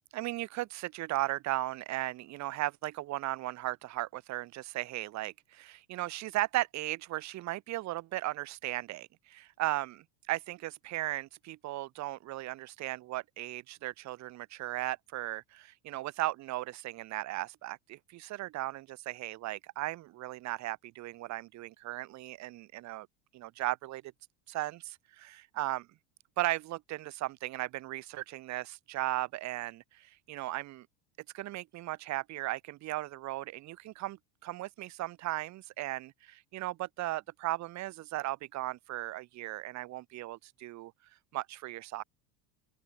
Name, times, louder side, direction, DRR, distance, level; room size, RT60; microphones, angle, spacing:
voice 1, 0.1-23.1 23.3-24.0 24.5-25.9 26.4-30.9 31.3-40.9 41.3-42.0, right 17 dB, 35° right, 0.7 m, -36 dB
open air
supercardioid pair, 125°, 48 cm